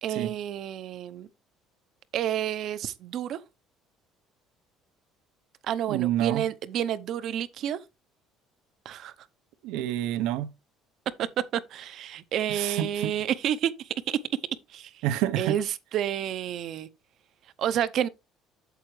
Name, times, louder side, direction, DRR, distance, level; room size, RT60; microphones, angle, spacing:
voice 1, 0.0-1.3 2.1-3.4 5.6-7.8 8.8-9.1 11.2-11.3 11.5-14.2 14.7-15.1 15.4-16.9 17.6-18.1, right 10 dB, 45° right, 0.7 m, -30 dB
voice 2, 5.9-6.4 9.6-10.5 12.5-13.1 15.0-15.5, right 12 dB, 85° right, 0.9 m, -28 dB
8.3 x 7.9 x 3.2 m
cardioid pair, 165°, 0 cm